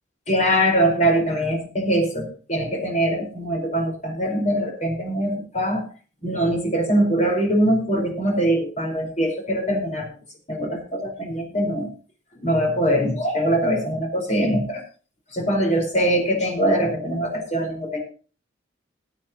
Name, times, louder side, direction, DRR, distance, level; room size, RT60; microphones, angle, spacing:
voice 1, 0.3-5.8 6.2-10.1 10.5-11.9 12.3-14.8 15.3-18.0, right 1 dB, 40° left, 2 dB, 4.7 m, -22 dB
21.0 x 8.6 x 2.9 m, 0.38 s
head